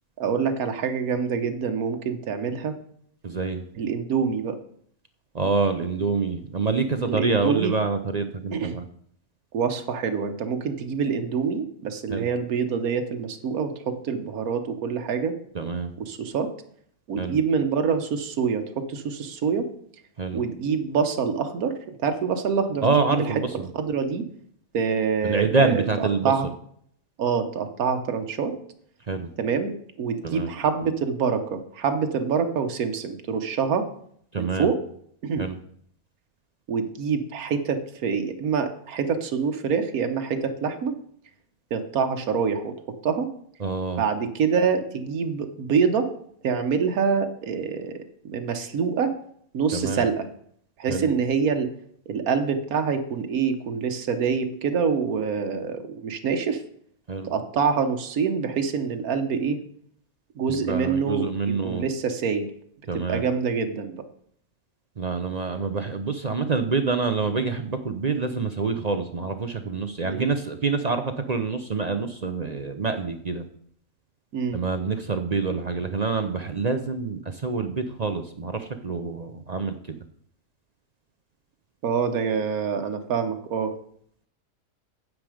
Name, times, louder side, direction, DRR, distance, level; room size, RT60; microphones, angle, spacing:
voice 1, 0.2-2.8 3.8-4.6 7.0-7.7 8.5-8.8 9.5-15.3 16.0-16.5 17.1-19.7 20.3-22.8 23.1-23.4 23.7-24.3 24.7-26.5 27.2-28.5 29.4-33.9 34.4-34.8 35.2-35.4 36.7-40.9 41.7-42.7 43.0-43.3 44.0-46.1 46.4-49.1 49.5-50.3 50.8-51.7 52.1-56.6 57.2-59.6 60.4-62.5 62.9-64.0 70.1-70.3 74.3-74.6 81.8-83.7, right 6 dB, 80° right, 6 dB, 1.5 m, -26 dB
voice 2, 3.2-3.6 5.3-8.9 12.1-12.3 15.5-15.9 17.2-17.4 20.2-20.4 22.8-23.7 25.2-26.3 29.1-29.3 30.2-30.5 34.3-34.7 35.4-35.6 43.6-44.0 49.7-50.1 50.9-51.1 57.1-57.3 60.6-61.8 62.9-63.2 65.0-73.4 74.5-80.0, right 4 dB, 40° right, 7 dB, 0.6 m, -26 dB
9.5 x 7.6 x 5.0 m, 0.64 s
omnidirectional pair, 1.5 m